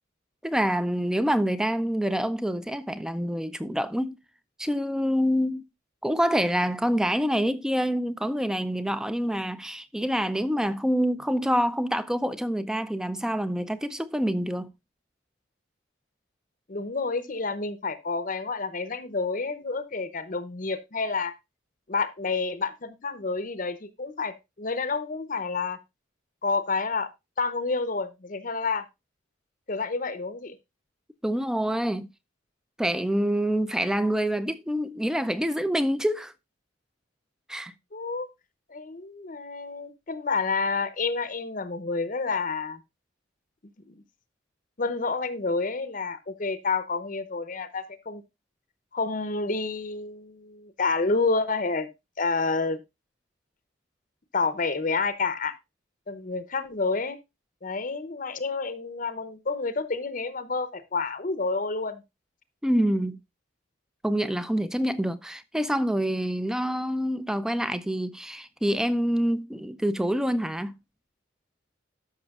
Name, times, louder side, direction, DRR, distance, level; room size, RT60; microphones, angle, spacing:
voice 1, 0.4-4.2 4.6-5.6 6.0-14.7 31.2-32.1 32.8-36.3 37.5-37.7 62.6-63.2 64.0-70.7, equal, 5° right, 0.4 m, -26 dB
voice 2, 16.7-21.3 21.9-25.8 26.4-27.1 27.4-28.8 29.7-30.6 37.9-38.3 38.7-42.8 43.9-44.0 44.8-48.2 48.9-51.9 52.2-52.8 54.3-55.5 56.1-57.2 57.6-62.0, left 4 dB, 40° left, 0.7 m, -29 dB
13.0 x 6.1 x 2.4 m
head